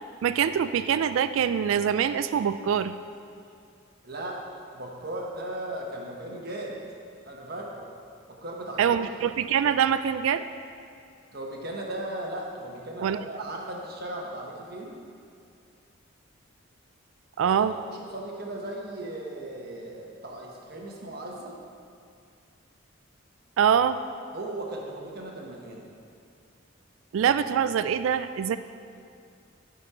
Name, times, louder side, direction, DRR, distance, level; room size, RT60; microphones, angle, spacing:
voice 1, 0.2-2.9 8.8-10.4 13.0-13.2 17.4-17.8 23.6-24.0 27.1-28.6, right 8 dB, 70° right, 12 dB, 0.3 m, -24 dB
voice 2, 4.0-4.4 4.7-6.8 7.2-7.9 8.3-9.0 11.3-15.0 17.4-21.6 24.3-25.9, right 1 dB, 50° right, -1 dB, 1.4 m, -37 dB
13.5 x 5.5 x 4.4 m, 2.4 s
head